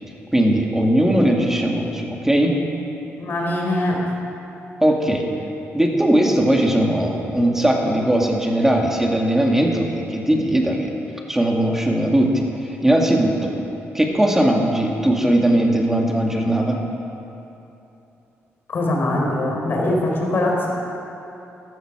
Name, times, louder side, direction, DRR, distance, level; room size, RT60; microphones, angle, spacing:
voice 1, 0.3-2.6 4.8-5.2 5.7-10.9 11.3-12.4 12.8-13.5 13.9-16.8, right 1 dB, 10° right, 0 dB, 2.0 m, -19 dB
voice 2, 3.2-4.0 18.7-20.7, left 1 dB, 50° left, -1 dB, 3.9 m, -22 dB
14.0 x 14.0 x 6.1 m, 2.9 s
cardioid pair, 120°, 5 cm